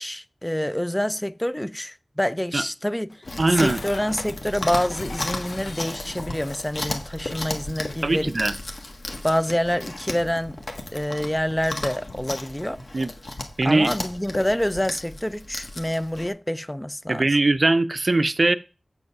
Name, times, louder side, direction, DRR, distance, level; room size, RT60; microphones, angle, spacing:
voice 1, 0.0-3.1 3.5-8.3 9.2-10.6 10.9-12.8 13.6-17.3, equal, 10° left, 0.4 m, -27 dB
Dishes pots and pans, 3.1-6.9, left 3 dB, 80° left, 0.6 m, -42 dB
Chewing mastication, 3.2-16.3, left 2 dB, 55° left, 1.5 m, -34 dB
voice 2, 3.4-3.8 8.0-8.5 12.9-13.1 13.6-13.9 17.1-18.6, right 2 dB, 45° right, 0.5 m, -20 dB
8.2 x 5.3 x 5.9 m
wide cardioid pair, 75°, 0 cm